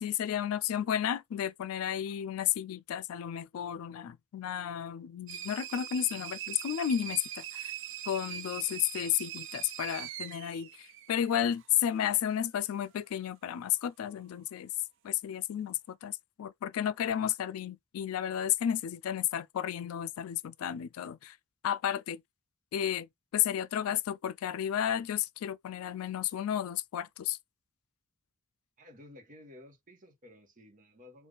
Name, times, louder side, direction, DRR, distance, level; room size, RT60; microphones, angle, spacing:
voice 1, 0.0-7.7 8.1-14.7 15.0-21.4 21.6-22.2 22.7-27.4, left 10 dB, 75° left, 0.3 m, -32 dB
sound 1, 5.3-11.7, right 10 dB, 60° right, 0.6 m, -42 dB
voice 2, 28.8-31.3, left 1 dB, 40° right, 1.2 m, -54 dB
3.3 x 2.5 x 3.8 m
head